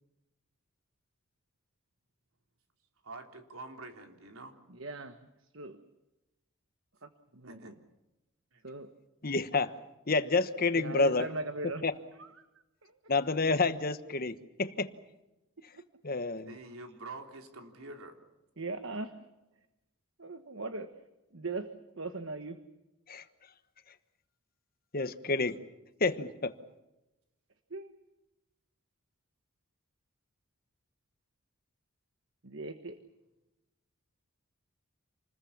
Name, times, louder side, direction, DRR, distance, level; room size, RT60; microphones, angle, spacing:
voice 1, 3.0-4.6 7.4-7.8 8.5-8.6 16.5-18.2, right 2 dB, 75° right, 4 dB, 3.6 m, -46 dB
voice 2, 4.7-5.2 5.5-5.8 7.0-7.7 8.6-8.9 10.7-11.8 12.2-12.3 12.8-12.9 18.6-19.1 20.2-20.9 21.3-21.7 22.0-22.6 27.7-27.9 32.4-33.0, right 3 dB, 60° right, 9 dB, 1.3 m, -39 dB
voice 3, 9.2-9.7 10.1-11.3 11.8-12.0 13.1-14.9 16.0-16.5 23.1-23.2 24.9-25.6 26.0-26.5, left 3 dB, 45° left, 11 dB, 1.2 m, -29 dB
28.0 x 21.0 x 7.3 m, 0.97 s
head